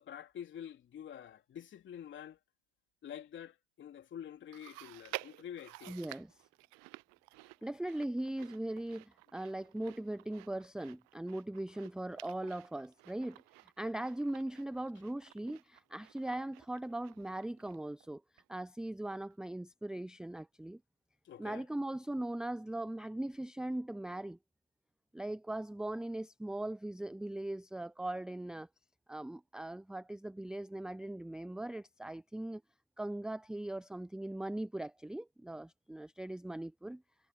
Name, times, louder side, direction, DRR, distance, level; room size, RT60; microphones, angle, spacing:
voice 1, 0.0-2.4 3.0-6.0 21.2-21.6, left 9 dB, 35° left, 3.2 m, -47 dB
Chewing mastication, 4.5-18.1 18.4-18.5 19.3-19.4, right 26 dB, 50° right, 1.0 m, -52 dB
voice 2, 5.9-6.3 7.6-13.4 13.8-20.8 21.4-24.4 25.1-28.7 29.1-32.6 33.0-37.0, right 1 dB, ahead, 0.7 m, -40 dB
hypercardioid pair, 85°, 35 cm